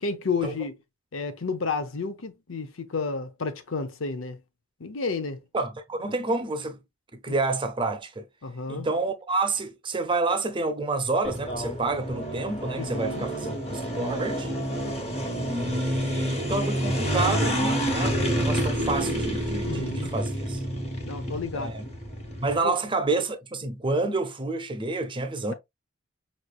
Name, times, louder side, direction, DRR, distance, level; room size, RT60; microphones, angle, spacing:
voice 1, 0.0-0.8 1.1-4.4 4.8-5.4 7.3-7.4 8.4-8.9 12.8-13.3 19.6-20.1 21.0-21.8 22.6-22.7, left 4 dB, 80° left, 0.8 m, -31 dB
voice 2, 5.5-6.8 7.2-8.3 8.7-14.5 15.5-20.6 21.5-21.8 22.4-25.5, right 3 dB, 25° right, 0.6 m, -28 dB
sound 1, 11.2-22.6, equal, 30° left, 1.4 m, -29 dB
5.4 x 3.2 x 2.3 m
head